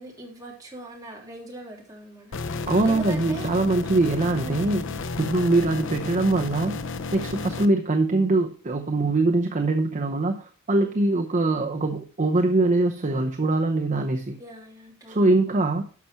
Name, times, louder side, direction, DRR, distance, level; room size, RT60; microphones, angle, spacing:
voice 1, 0.0-3.5 4.3-4.7 14.4-15.2, right 1 dB, 15° right, -2 dB, 3.0 m, -41 dB
sound 1, 2.3-7.7, left 4 dB, 60° left, 0.7 m, -32 dB
voice 2, 2.7-4.9 5.2-6.8 7.1-14.4 15.1-15.8, right 2 dB, 35° right, 4 dB, 0.8 m, -23 dB
12.0 x 6.0 x 4.3 m, 0.40 s
head